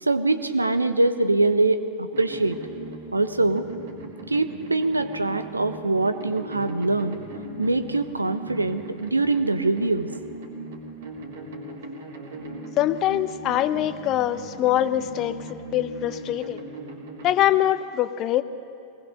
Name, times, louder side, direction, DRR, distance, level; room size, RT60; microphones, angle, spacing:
voice 1, 0.0-2.6 3.1-3.7 4.3-7.2 7.6-10.1, right 2 dB, 80° right, 11 dB, 1.0 m, -23 dB
E flat echo delay mamma, 2.1-17.5, right 2 dB, 60° right, 3.7 m, -39 dB
voice 2, 12.8-16.6 17.2-18.4, left 12 dB, 35° left, 13 dB, 0.8 m, -23 dB
22.0 x 19.5 x 6.6 m, 2.7 s
figure-of-eight pair, 90°, 0 cm